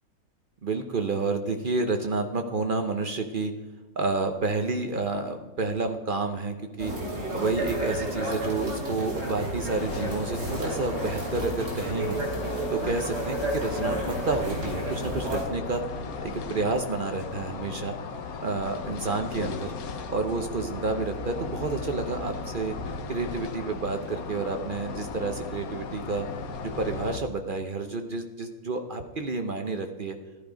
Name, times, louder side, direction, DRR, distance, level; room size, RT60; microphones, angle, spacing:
voice 1, 0.6-3.5 4.0-6.9 7.3-12.2 12.7-15.8 16.2-17.9 18.4-19.7 20.1-22.8 23.1-26.3 26.6-30.2, right 3 dB, 65° right, 6 dB, 0.5 m, -30 dB
sound 1, 6.8-15.4, right 1 dB, 40° right, 3.5 m, -31 dB
sound 2, 9.7-27.2, left 5 dB, 55° left, 1.2 m, -36 dB
14.0 x 11.5 x 5.1 m, 1.2 s
omnidirectional pair, 2.1 m